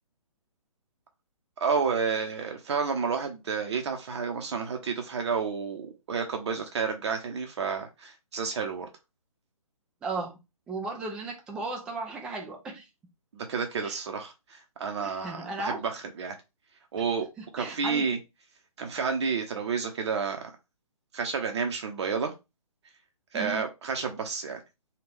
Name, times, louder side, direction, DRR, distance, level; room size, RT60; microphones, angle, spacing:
voice 1, 1.6-8.9 13.3-16.3 16.9-17.3 17.5-18.2 18.8-20.4 21.1-22.3 23.3-24.6, right 5 dB, 50° right, 0.7 m, -30 dB
voice 2, 10.0-10.4 10.7-12.9 13.8-14.0 15.0-15.8 17.4-18.1 23.3-23.6, right 3 dB, 5° right, 0.3 m, -35 dB
3.4 x 2.3 x 3.4 m
figure-of-eight pair, 135°, 19 cm